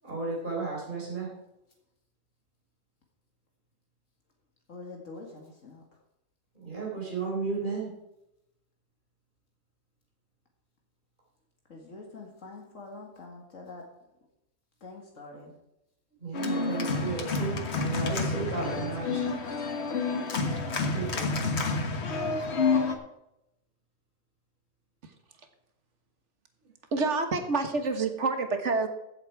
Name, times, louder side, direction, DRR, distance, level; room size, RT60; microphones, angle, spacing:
voice 1, 0.0-1.3 6.6-7.9 16.2-19.2 20.7-21.2, right 4 dB, 40° right, -4 dB, 4.0 m, -34 dB
voice 2, 4.7-5.8 11.7-13.9 14.8-15.5, left 3 dB, 80° left, 0 dB, 2.2 m, -45 dB
Organ, 16.3-23.0, left 3 dB, 60° left, 1.5 m, -29 dB
voice 3, 26.9-28.9, right 3 dB, 70° right, 7 dB, 1.7 m, -27 dB
15.0 x 8.0 x 4.7 m, 0.86 s
omnidirectional pair, 1.3 m